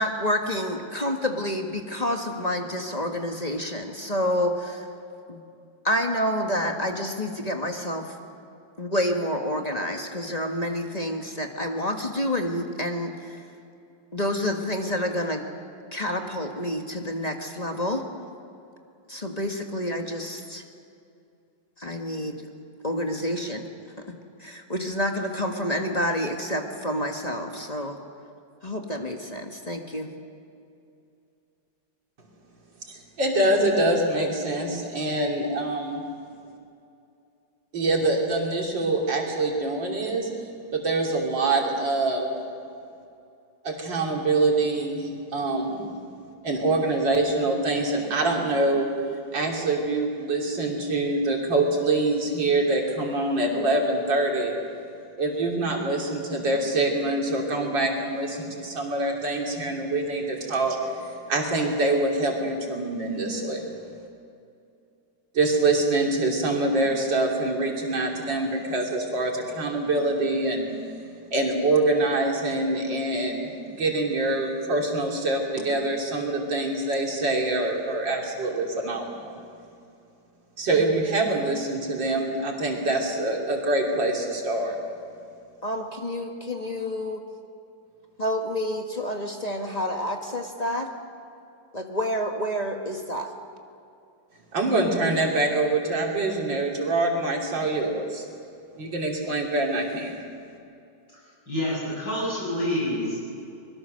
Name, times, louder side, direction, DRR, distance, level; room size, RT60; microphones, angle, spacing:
voice 1, 0.0-4.9 5.3-5.4 5.8-8.1 8.8-13.4 14.1-15.4 15.9-18.1 19.1-20.6 21.8-22.4 22.8-23.7 24.0-24.1 24.4-28.0 28.6-30.1 85.6-87.2 88.2-90.9 91.7-93.3, equal, 25° left, 3 dB, 1.4 m, -28 dB
voice 2, 32.9-36.0 37.7-40.3 40.7-42.3 43.6-45.9 46.4-48.9 49.3-54.6 55.2-63.7 65.3-70.7 71.3-73.5 73.8-79.4 80.6-84.8 94.5-98.3 98.8-100.2, right 2 dB, 75° right, 0 dB, 3.8 m, -25 dB
voice 3, 101.5-103.2, left 1 dB, 65° left, -6 dB, 8.6 m, -27 dB
24.0 x 22.0 x 6.5 m, 2.5 s
omnidirectional pair, 2.0 m